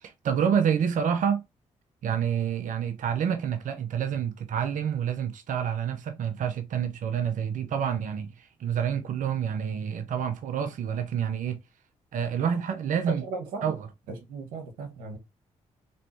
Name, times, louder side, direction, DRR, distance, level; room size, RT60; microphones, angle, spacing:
voice 1, 0.0-1.4 2.0-11.6 12.1-13.2 13.6-13.9, right 8 dB, 70° right, 0.8 m, -28 dB
voice 2, 13.1-13.7 14.1-15.2, right 3 dB, 90° right, 1.4 m, -36 dB
4.3 x 3.1 x 3.2 m
supercardioid pair, 55°, 14 cm